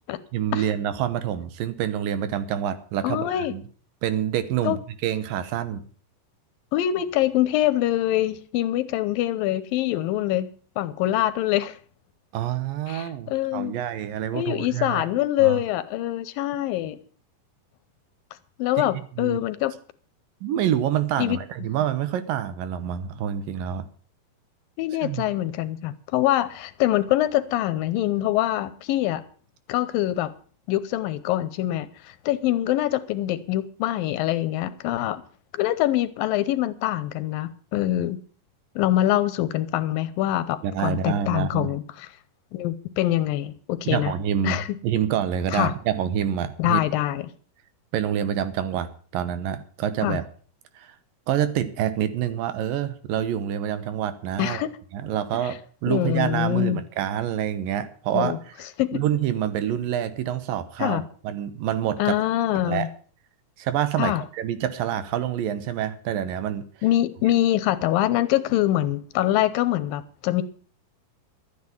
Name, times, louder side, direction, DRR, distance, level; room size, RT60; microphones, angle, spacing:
voice 1, 0.3-3.6 4.0-5.8 12.3-15.0 15.4-15.6 19.2-19.4 20.4-23.9 25.0-25.3 40.6-41.8 43.8-46.8 47.9-50.2 50.8-50.9 51.3-54.7 54.9-58.4 58.9-62.2 62.6-62.9 63.6-66.7, right 10 dB, 80° right, 2.7 m, -27 dB
voice 2, 3.0-3.5 4.6-4.8 6.7-10.5 10.8-11.8 12.9-13.7 14.3-17.0 18.6-19.7 21.2-21.4 24.8-29.2 29.7-30.3 30.7-35.2 35.5-38.2 38.8-42.1 42.5-44.1 44.4-44.8 45.5-45.7 46.6-47.3 50.0-50.2 54.4-54.7 55.4-55.5 55.9-56.8 58.1-58.4 58.8-59.0 60.8-61.0 62.0-62.9 64.0-64.2 66.8-70.4, left 14 dB, 85° left, 2.5 m, -24 dB
12.5 x 9.6 x 7.2 m
omnidirectional pair, 4.1 m